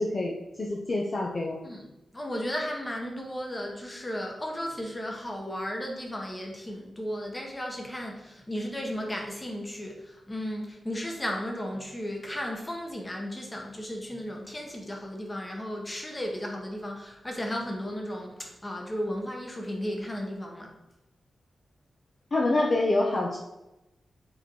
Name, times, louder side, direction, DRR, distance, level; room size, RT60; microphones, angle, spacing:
voice 1, 0.0-1.6 22.3-23.4, left 2 dB, 35° left, -1 dB, 0.8 m, -26 dB
voice 2, 2.1-20.8, equal, 15° left, 1 dB, 1.3 m, -35 dB
7.7 x 4.5 x 4.7 m, 0.95 s
wide cardioid pair, 155°, 0 cm